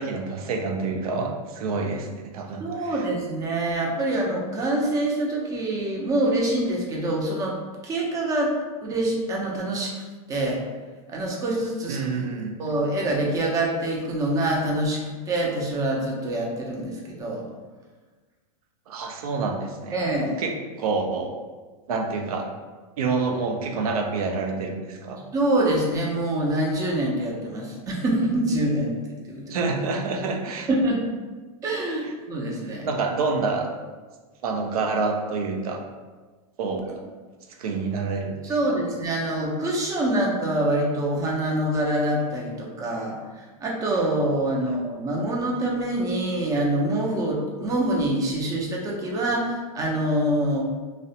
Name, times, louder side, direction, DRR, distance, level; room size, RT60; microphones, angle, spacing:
voice 1, 0.0-2.1 2.3-3.0 11.9-12.5 18.9-20.0 20.4-21.3 21.9-22.5 23.0-25.2 29.5-30.7 32.8-33.7 34.4-35.8 36.6-36.9 37.6-38.3, right 4 dB, 80° right, 3 dB, 0.5 m, -27 dB
voice 2, 2.6-7.6 7.8-8.5 8.8-9.9 10.3-10.6 11.1-12.2 12.6-15.0 15.3-17.4 19.9-20.4 25.3-29.0 29.3-29.7 30.7-31.0 31.6-32.9 36.9-37.0 38.4-50.6, right 1 dB, 20° right, -1 dB, 0.4 m, -25 dB
2.4 x 2.1 x 2.7 m, 1.3 s
supercardioid pair, 135°, 19 cm